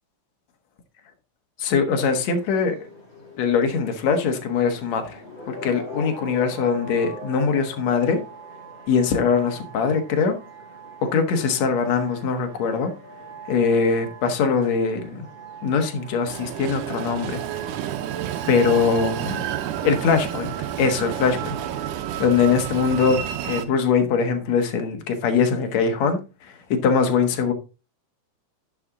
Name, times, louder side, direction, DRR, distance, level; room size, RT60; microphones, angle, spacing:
voice 1, 1.6-2.8 3.4-5.2 5.5-8.2 8.9-10.4 11.0-12.9 13.5-15.3 15.6-17.4 18.5-19.5 19.8-21.6 22.2-27.5, left 5 dB, 65° left, 2.5 m, -22 dB
sound 1, 2.0-21.9, right 2 dB, 35° left, 3.8 m, -41 dB
Train, 16.3-23.7, right 11 dB, 85° right, 2.4 m, -30 dB
10.5 x 6.0 x 3.7 m
omnidirectional pair, 3.5 m